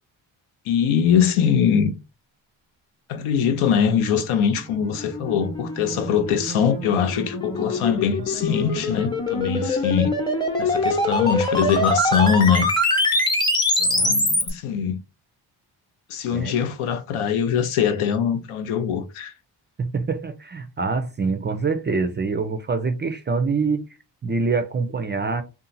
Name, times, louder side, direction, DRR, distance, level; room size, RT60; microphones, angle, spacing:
voice 1, 0.7-1.9 3.1-10.2 10.6-12.7 13.8-15.0 16.1-19.3, left 7 dB, 80° left, 0.6 m, -22 dB
sound 1, 4.6-14.5, left 1 dB, 10° left, 0.8 m, -24 dB
voice 2, 19.8-23.9 24.2-25.4, right 4 dB, 25° right, 0.3 m, -25 dB
2.7 x 2.3 x 2.6 m
supercardioid pair, 45°, 49 cm